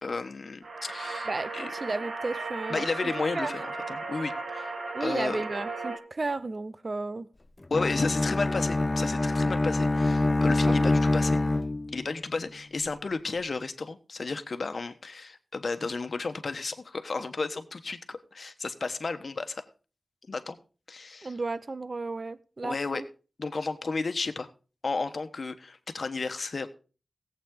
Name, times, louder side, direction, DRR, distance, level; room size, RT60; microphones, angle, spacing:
voice 1, 0.0-1.3 1.5-1.7 2.7-4.7 5.0-5.4 7.7-11.4 11.9-19.6 20.3-20.6 20.9-21.3 22.6-23.0 23.4-24.5 24.8-26.7, left 3 dB, 65° left, 1.2 m, -33 dB
sound 1, 0.6-6.0, right 3 dB, 85° right, 2.2 m, -36 dB
voice 2, 1.3-3.5 4.9-7.3 10.7-10.9 21.2-23.0, right 3 dB, 50° right, 0.7 m, -33 dB
Bowed string instrument, 7.7-12.1, left 2 dB, 30° left, 0.5 m, -25 dB
17.5 x 8.2 x 3.8 m
wide cardioid pair, 85°, 0 cm